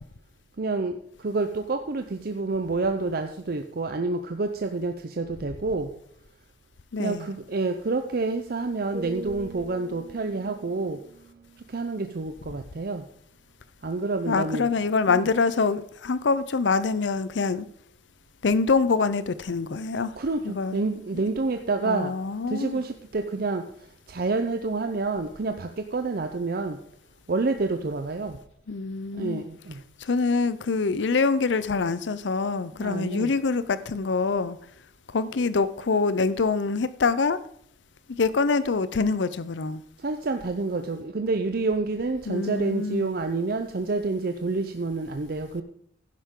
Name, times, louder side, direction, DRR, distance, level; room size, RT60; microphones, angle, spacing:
voice 1, 0.6-5.9 7.0-11.0 11.7-13.0 13.8-14.7 15.1-15.3 20.2-22.1 22.5-26.8 27.3-28.4 29.2-29.8 32.8-33.3 40.0-45.6, right 3 dB, 55° right, 0.6 m, -28 dB
voice 2, 6.9-7.3 14.3-17.7 18.4-20.1 20.4-20.8 21.1-21.2 21.8-22.8 28.7-29.4 30.0-34.6 35.1-37.4 38.1-39.8 42.3-43.1, left 4 dB, 85° left, 0.6 m, -25 dB
sound 1, 8.9-12.9 13.3-13.6, right 2 dB, 35° right, 0.9 m, -43 dB
11.5 x 10.0 x 3.7 m
head